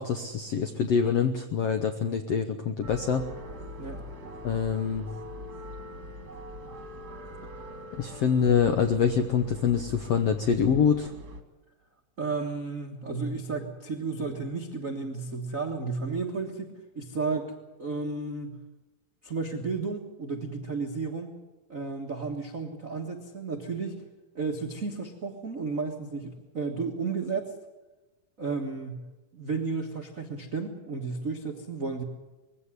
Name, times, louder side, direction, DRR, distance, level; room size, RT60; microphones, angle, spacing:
voice 1, 0.0-3.3 4.4-5.1 8.0-11.1, left 7 dB, 75° left, 7 dB, 1.4 m, -25 dB
sound 1, 2.8-11.4, equal, 35° right, 1.8 m, -42 dB
voice 2, 12.2-16.7 16.9-18.5 19.2-21.3 21.7-24.0 24.3-27.5 28.4-29.0 29.3-32.0, right 4 dB, 60° right, 2 dB, 0.8 m, -33 dB
21.0 x 16.5 x 9.8 m, 1.1 s
omnidirectional pair, 4.3 m